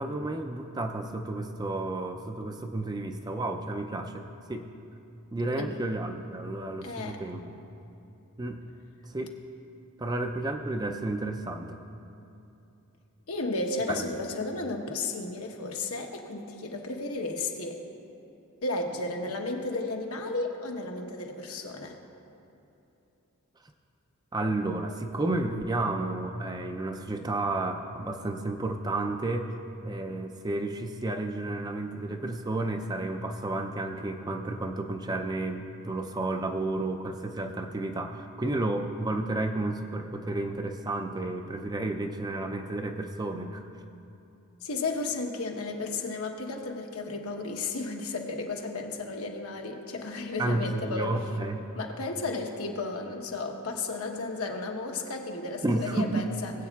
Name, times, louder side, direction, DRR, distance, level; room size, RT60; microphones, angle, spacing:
voice 1, 0.0-4.2 4.5-4.7 5.3-7.6 8.4-8.6 9.1-9.3 10.0-11.8 13.9-14.0 24.3-29.5 29.8-43.6 50.4-51.6 55.6-56.3, right 2 dB, 20° right, 5 dB, 0.4 m, -31 dB
voice 2, 6.8-7.2 13.3-17.8 18.6-22.0 44.6-51.2 51.8-56.5, left 3 dB, 80° left, 1 dB, 1.1 m, -33 dB
20.0 x 8.2 x 2.3 m, 2.8 s
head